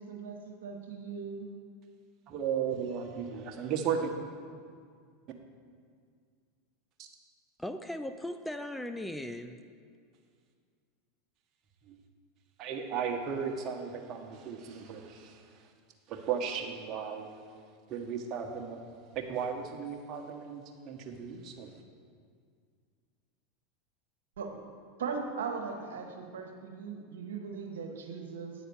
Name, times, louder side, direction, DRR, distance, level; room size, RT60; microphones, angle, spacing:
voice 1, 0.0-1.5 24.4-24.5 25.0-28.5, right 5 dB, 90° right, 2 dB, 1.1 m, -39 dB
voice 2, 2.3-4.1 7.0-7.1 11.9-12.0 12.6-15.7 16.1-17.3 17.9-18.8 19.1-21.7, right 7 dB, 45° right, 3 dB, 1.1 m, -35 dB
voice 3, 7.6-9.6, left 1 dB, 5° left, 8 dB, 0.4 m, -38 dB
9.2 x 4.2 x 7.0 m, 2.1 s
hypercardioid pair, 110°, 0 cm